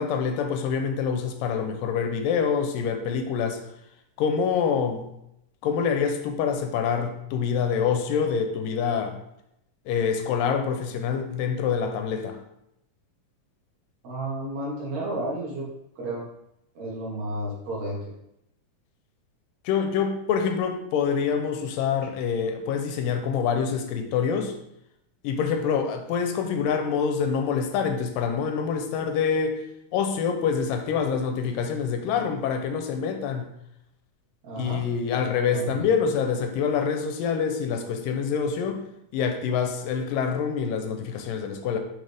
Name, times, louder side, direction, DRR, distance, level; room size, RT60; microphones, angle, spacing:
voice 1, 0.0-3.6 4.2-5.1 5.6-9.2 9.9-12.4 19.7-24.6 25.2-29.6 29.9-33.5 34.6-38.8 39.1-41.8, left 6 dB, 90° left, 6 dB, 2.4 m, -26 dB
voice 2, 14.0-15.7 16.0-16.3 16.7-18.1 22.0-22.1 34.4-34.8 35.1-35.9, right 1 dB, 60° right, -4 dB, 2.9 m, -32 dB
6.5 x 6.1 x 3.5 m, 0.80 s
omnidirectional pair, 3.9 m